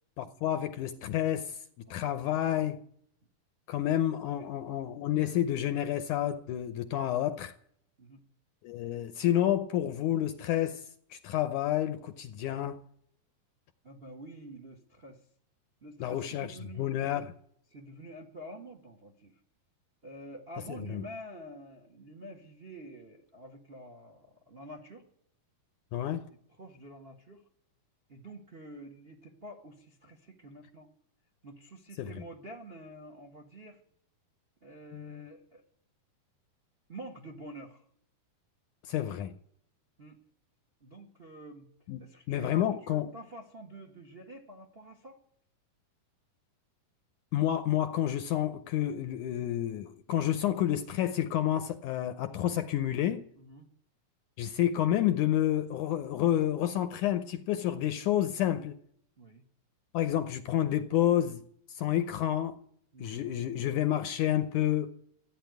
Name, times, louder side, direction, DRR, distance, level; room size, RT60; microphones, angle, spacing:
voice 1, 0.2-1.6 1.9-2.8 3.7-7.5 8.6-10.8 11.1-12.8 16.0-16.5 16.8-17.3 20.9-21.0 25.9-26.3 32.0-32.1 34.9-35.0 38.9-39.3 41.9-42.0 42.3-43.1 47.3-53.3 54.4-58.8 59.9-61.4 61.8-62.6 63.0-64.9, left 12 dB, 75° left, 1.8 m, -29 dB
voice 2, 13.8-15.2 15.8-16.9 17.7-19.4 20.0-25.0 26.5-27.4 28.1-30.9 31.4-33.8 34.6-35.6 36.9-37.8 40.0-40.2 40.8-41.7 42.0-45.2 53.3-53.7 59.2-59.4 62.9-63.5, right 1 dB, 65° right, 0.5 m, -48 dB
14.5 x 9.1 x 9.2 m
omnidirectional pair, 4.2 m